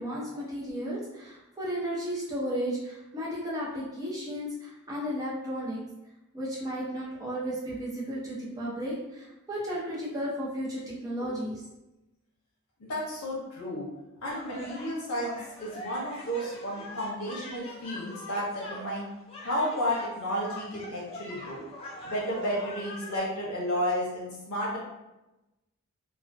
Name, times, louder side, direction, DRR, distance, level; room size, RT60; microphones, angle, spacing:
voice 1, 0.0-5.8 6.3-11.6, equal, 15° right, -7 dB, 0.6 m, -34 dB
voice 2, 12.9-13.9 14.2-19.1 19.4-21.6 22.0-24.8, equal, 85° left, -5 dB, 0.7 m, -32 dB
sound 1, 14.3-23.2, left 1 dB, 25° left, 0.4 m, -43 dB
2.3 x 2.2 x 2.5 m, 0.98 s
head